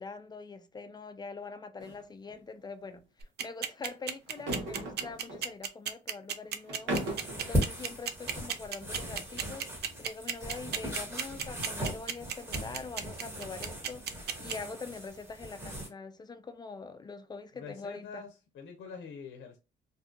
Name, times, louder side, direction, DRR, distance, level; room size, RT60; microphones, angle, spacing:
voice 1, 0.0-9.7 10.0-18.2, left 4 dB, 20° left, 0.3 m, -44 dB
sound 1, 1.8-2.0 2.3-2.4 4.3-5.5 6.7-7.4, right 1 dB, 75° right, 1.1 m, -36 dB
sound 2, 3.2-14.5, right 8 dB, 55° right, 0.4 m, -33 dB
sound 3, 6.9-15.9, equal, 15° right, 1.3 m, -38 dB
voice 2, 17.5-18.3 18.6-19.6, left 6 dB, 65° left, 0.6 m, -44 dB
2.6 x 2.3 x 2.4 m
cardioid pair, 90°, 20 cm